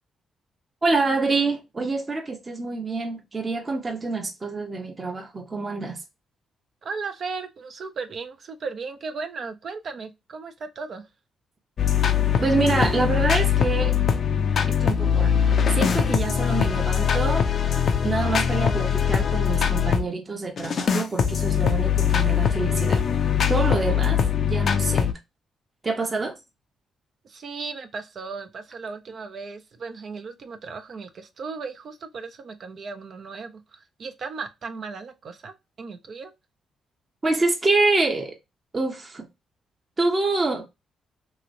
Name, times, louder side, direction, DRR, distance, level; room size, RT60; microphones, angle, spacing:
voice 1, 0.8-6.0 12.4-14.0 14.8-17.5 18.0-23.0 23.5-25.1 25.8-26.4 37.2-38.3 38.7-39.3 40.0-40.7, right 3 dB, 35° right, 0.9 m, -26 dB
voice 2, 6.8-11.0 27.2-36.3, right 4 dB, 60° right, 0.6 m, -36 dB
sound 1, 11.8-20.1 20.6-25.1, left 8 dB, 60° left, 0.5 m, -22 dB
3.0 x 2.9 x 2.6 m
supercardioid pair, 55°, 0 cm